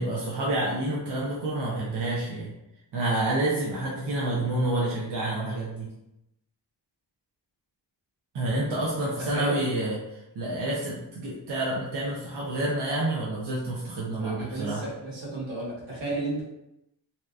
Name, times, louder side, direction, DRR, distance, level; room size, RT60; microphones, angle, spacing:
voice 1, 0.0-2.5 2.9-5.9 8.3-14.8, right 1 dB, 65° right, -4 dB, 0.6 m, -28 dB
voice 2, 14.2-16.4, right 2 dB, 85° right, -7 dB, 1.3 m, -33 dB
2.7 x 2.2 x 2.2 m, 0.89 s
wide cardioid pair, 100°, 45 cm